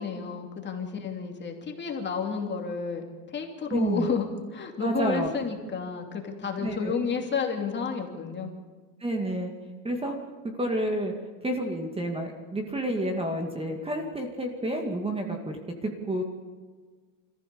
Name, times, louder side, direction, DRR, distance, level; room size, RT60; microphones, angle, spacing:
voice 1, 0.0-3.0 3.3-8.5, left 5 dB, 25° left, 2 dB, 2.8 m, -31 dB
voice 2, 3.7-4.1 4.8-5.3 6.6-7.0 9.0-9.5 9.8-10.2 10.4-11.1 11.4-16.2, right 1 dB, 15° right, 4 dB, 2.2 m, -29 dB
26.5 x 15.0 x 7.0 m, 1.5 s
supercardioid pair, 140°, 44 cm